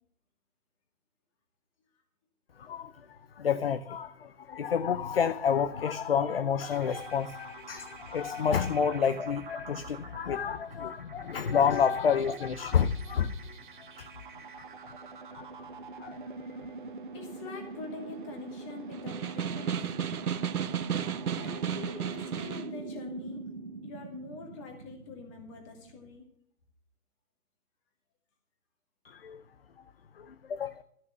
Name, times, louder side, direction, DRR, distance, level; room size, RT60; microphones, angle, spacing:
voice 1, 2.6-13.6 13.9-14.2 14.6-14.7 15.3-15.7 16.0-16.2 29.0-29.4 30.2-30.8, left 7 dB, 45° left, 0.5 m, -29 dB
sound 1, 6.7-26.2, right 4 dB, 35° right, 0.9 m, -44 dB
voice 2, 17.1-19.8 21.4-23.4 23.8-26.3, left 4 dB, 20° left, 2.3 m, -44 dB
Snare drum, 18.9-22.8, right 8 dB, 85° right, 0.9 m, -33 dB
13.5 x 6.5 x 7.0 m
hypercardioid pair, 160°, 44 cm